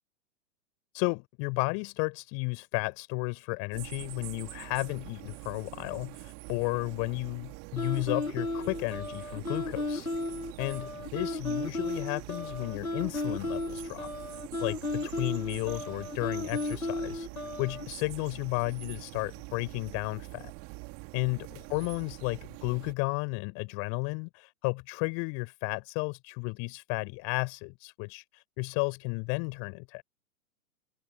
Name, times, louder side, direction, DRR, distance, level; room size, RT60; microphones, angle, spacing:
voice 1, 0.9-10.1 10.6-14.1 14.6-17.3 17.6-20.5 21.1-30.0, left 38 dB, 35° left, 4.9 m, -33 dB
sound 1, 3.7-22.9, right 31 dB, 35° right, 2.8 m, -45 dB
sound 2, 7.8-17.9, left 2 dB, 90° left, 1.5 m, -34 dB
figure-of-eight pair, 110°, 41 cm